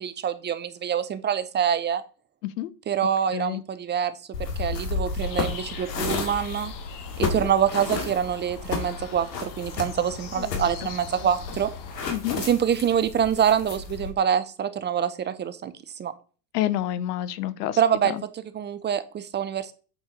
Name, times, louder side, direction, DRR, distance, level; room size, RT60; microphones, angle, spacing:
voice 1, 0.0-2.0 2.9-4.1 4.4-6.7 7.2-11.7 12.4-16.1 17.8-18.1 18.5-19.7, right 8 dB, 20° right, 0.6 m, -25 dB
voice 2, 3.3-3.6 7.2-7.5 10.3-10.7 12.1-12.4 16.5-17.8 18.0-18.2, left 13 dB, 70° left, 0.9 m, -29 dB
sound 1, 4.3-14.1, left 4 dB, 90° left, 2.3 m, -32 dB
sound 2, 5.2-12.0, left 5 dB, 40° left, 1.7 m, -41 dB
8.2 x 4.4 x 5.0 m
hypercardioid pair, 105°, 48 cm